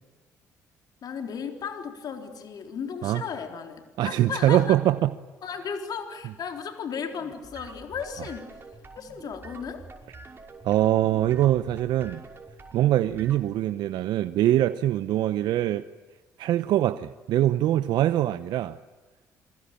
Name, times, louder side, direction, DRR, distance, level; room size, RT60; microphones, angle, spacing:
voice 1, 1.0-4.8 5.4-8.5 8.9-9.8, left 6 dB, 55° left, 3.7 m, -35 dB
voice 2, 4.0-5.1 10.6-12.2 12.7-15.8 16.4-18.8, right 13 dB, 65° right, 0.8 m, -23 dB
sound 1, 7.1-13.4, right 3 dB, 30° right, 6.0 m, -46 dB
28.0 x 23.5 x 8.7 m
hypercardioid pair, 55°, 8 cm